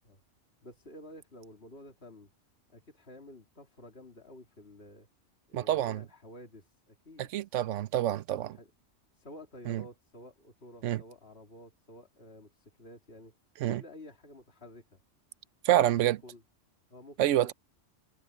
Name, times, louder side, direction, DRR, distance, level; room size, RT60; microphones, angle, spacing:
voice 1, 0.6-2.3 2.7-5.1 5.5-7.3 8.4-8.7 9.2-13.3 13.6-15.0 15.7-16.4 16.9-17.5, left 1 dB, 55° left, 3.3 m, -51 dB
voice 2, 5.5-6.0 7.2-8.6 9.7-9.8 10.8-11.0 13.6-13.8 15.6-16.2 17.2-17.5, right 12 dB, 80° right, 1.0 m, -27 dB
omnidirectional pair, 1.2 m